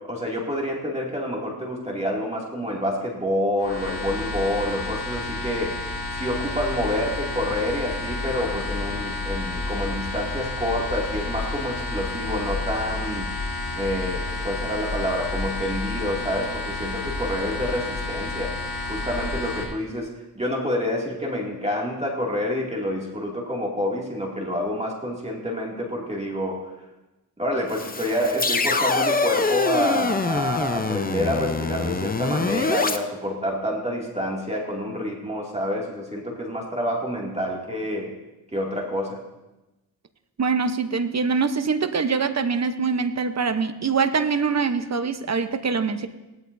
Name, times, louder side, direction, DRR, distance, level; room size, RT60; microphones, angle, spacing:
voice 1, 0.0-5.8 6.1-13.3 13.8-26.8 27.4-38.1 38.5-39.2, left 1 dB, 15° right, -2 dB, 2.4 m, -28 dB
sound 1, 3.6-19.6, left 2 dB, 70° left, 3.8 m, -30 dB
sound 2, 27.7-33.0, left 4 dB, 20° left, 0.8 m, -25 dB
voice 2, 40.4-46.1, right 5 dB, 40° right, 10 dB, 0.9 m, -24 dB
18.5 x 13.0 x 2.7 m, 1.0 s
cardioid pair, 70°, 41 cm